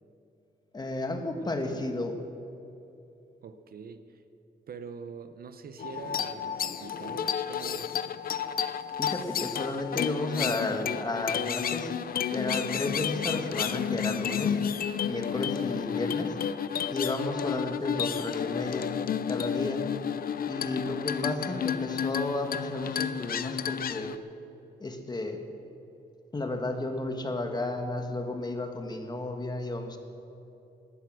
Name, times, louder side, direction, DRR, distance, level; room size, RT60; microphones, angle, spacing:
voice 1, 0.7-2.1 9.0-11.9 12.3-14.6 15.1-16.4 16.9-18.9 19.3-19.9 20.4-24.1 24.8-25.4 26.3-30.0, left 2 dB, 25° left, 5 dB, 1.5 m, -33 dB
voice 2, 1.4-1.9 3.4-4.2 4.7-8.0, right 6 dB, 60° right, 10 dB, 0.9 m, -44 dB
sound 1, 5.8-24.2, left 8 dB, 60° left, 0.6 m, -31 dB
18.0 x 11.5 x 6.3 m, 2.8 s
wide cardioid pair, 130°, 17 cm